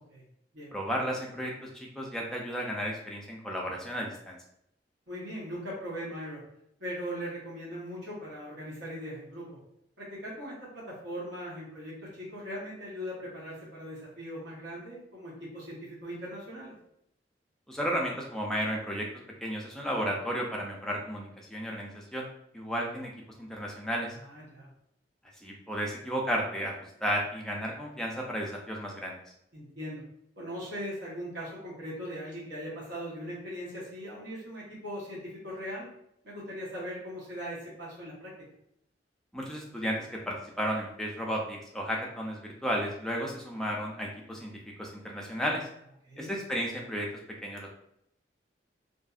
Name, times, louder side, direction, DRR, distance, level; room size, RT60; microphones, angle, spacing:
voice 1, 0.7-4.4 17.7-19.1 19.4-22.3 22.5-23.1 23.4-24.2 25.4-26.7 27.0-29.2 39.3-44.5 44.8-45.7 46.2-47.1 47.4-47.7, equal, 5° left, -2 dB, 0.4 m, -33 dB
voice 2, 5.1-6.4 6.8-9.5 10.0-16.7 24.1-24.7 29.5-30.0 30.4-35.9 36.2-38.3 46.0-46.3, equal, 75° right, -7 dB, 1.1 m, -39 dB
2.7 x 2.5 x 2.4 m, 0.74 s
head